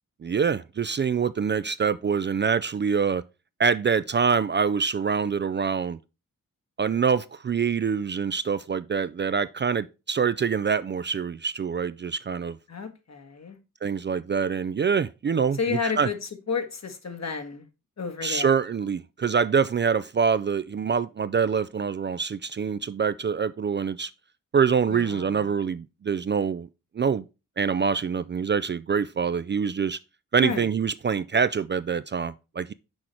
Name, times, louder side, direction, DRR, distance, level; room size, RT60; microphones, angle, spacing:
voice 1, 0.2-3.2 3.6-6.0 6.8-12.6 13.8-16.1 18.2-24.1 24.5-26.7 27.0-27.2 27.6-30.0 30.3-32.7, right 6 dB, 35° right, 0.4 m, -25 dB
voice 2, 12.7-13.6 15.6-16.2 16.5-17.7 18.0-18.6 24.9-25.5 30.4-30.7, left 5 dB, 50° left, 1.5 m, -31 dB
6.3 x 4.8 x 4.3 m
cardioid pair, 45°, 33 cm